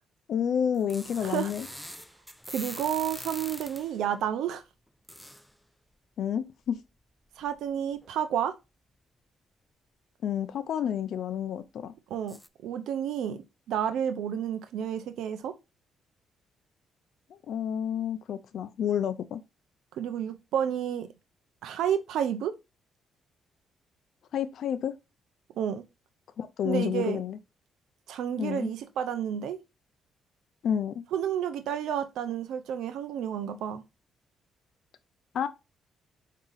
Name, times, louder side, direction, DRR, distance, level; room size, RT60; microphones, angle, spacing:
voice 1, 0.3-1.7 6.2-6.8 10.2-11.9 17.5-19.4 24.3-24.9 26.4-27.4 28.4-28.7 30.6-31.0 35.3-35.5, left 8 dB, 65° left, 0.4 m, -30 dB
sound 1, 0.7-4.0 5.1-5.5 6.8-6.9 7.5-7.6 7.9-8.1 12.3-12.5, equal, ahead, 0.4 m, -43 dB
voice 2, 1.2-1.5 2.5-4.6 7.4-8.5 12.1-15.5 19.9-21.1 21.6-22.5 25.6-25.8 26.6-27.2 28.1-29.6 31.1-33.8, right 9 dB, 80° right, 0.5 m, -30 dB
4.9 x 2.8 x 3.8 m
cardioid pair, 90°, 0 cm